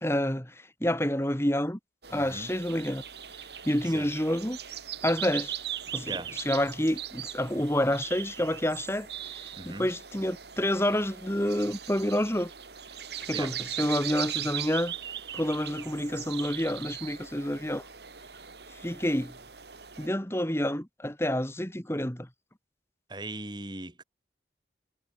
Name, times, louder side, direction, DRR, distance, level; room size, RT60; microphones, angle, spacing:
voice 1, 0.0-1.8 2.1-3.0 3.7-4.6 5.0-5.6 5.9-12.5 13.3-14.9 15.3-17.8 18.8-19.3 20.0-22.3, left 1 dB, 15° left, 2.3 m, -28 dB
sound 1, 2.0-20.1, right 10 dB, 70° right, 4.7 m, -39 dB
voice 2, 2.1-2.5 3.9-4.1 6.0-6.3 9.5-9.9 13.3-13.5 23.1-24.0, right 2 dB, 25° right, 2.3 m, -39 dB
head